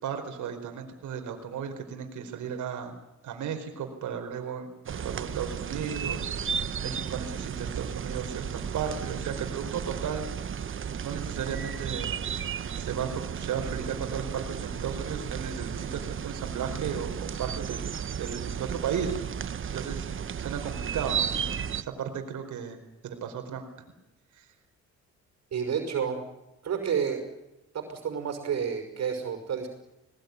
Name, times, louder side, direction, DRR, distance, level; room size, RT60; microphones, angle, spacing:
voice 1, 0.0-2.9 3.2-6.2 6.8-10.2 11.0-12.2 12.7-19.2 19.7-20.1 20.4-23.7 24.3-24.5, right 7 dB, 75° right, 5 dB, 4.6 m, -35 dB
sound 1, 4.9-21.8, right 7 dB, 45° right, 1.1 m, -34 dB
voice 2, 25.5-26.2 26.6-27.2 27.7-29.7, right 7 dB, 60° right, 5 dB, 5.7 m, -30 dB
20.5 x 20.5 x 9.5 m, 0.93 s
cardioid pair, 90°, 30 cm